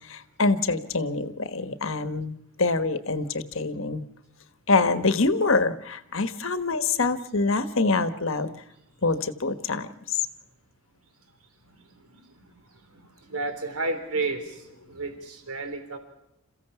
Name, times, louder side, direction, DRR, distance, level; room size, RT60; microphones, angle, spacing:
voice 1, 0.1-4.0 4.7-8.5 9.0-10.2, left 3 dB, 60° left, 11 dB, 1.4 m, -25 dB
voice 2, 13.3-14.5 14.9-16.0, right 3 dB, 80° right, 8 dB, 3.7 m, -31 dB
28.5 x 15.5 x 7.0 m, 0.83 s
head